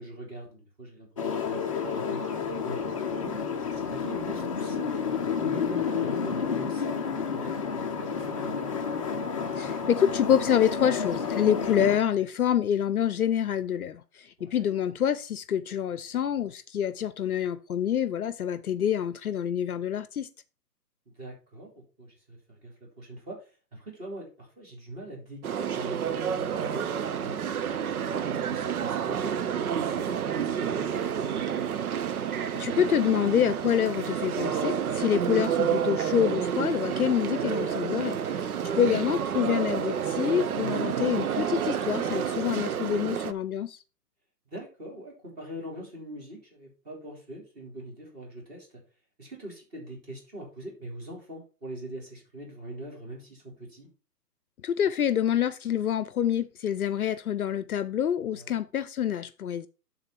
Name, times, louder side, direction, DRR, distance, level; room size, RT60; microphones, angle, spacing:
voice 1, 0.0-1.6 1.9-8.5 14.4-14.7 21.2-26.9 27.2-27.4 27.8-31.7 44.5-48.7 49.2-53.9 58.3-58.6, right 1 dB, 20° right, 3.1 m, -43 dB
sound 1, 1.2-12.0, left 6 dB, 20° left, 0.6 m, -30 dB
voice 2, 9.6-14.0 14.4-20.3 32.5-38.2 38.8-43.8 54.6-59.7, left 9 dB, 60° left, 0.7 m, -26 dB
sound 2, 25.4-43.3, right 8 dB, 60° right, 0.7 m, -29 dB
11.0 x 4.0 x 4.4 m
hypercardioid pair, 155°, 49 cm